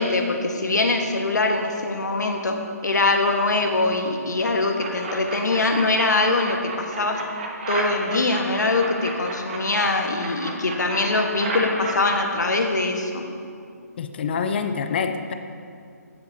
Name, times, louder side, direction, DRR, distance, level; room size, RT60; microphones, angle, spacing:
voice 1, 0.0-2.6 2.8-7.2 7.7-13.2, left 2 dB, 85° left, 3 dB, 1.3 m, -23 dB
sound 1, 4.8-6.1 6.4-9.8 10.2-12.2, right 3 dB, 40° right, 1.4 m, -32 dB
voice 2, 14.0-15.3, left 6 dB, 35° left, 8 dB, 0.5 m, -26 dB
15.5 x 7.8 x 2.7 m, 2.4 s
hypercardioid pair, 155°, 9 cm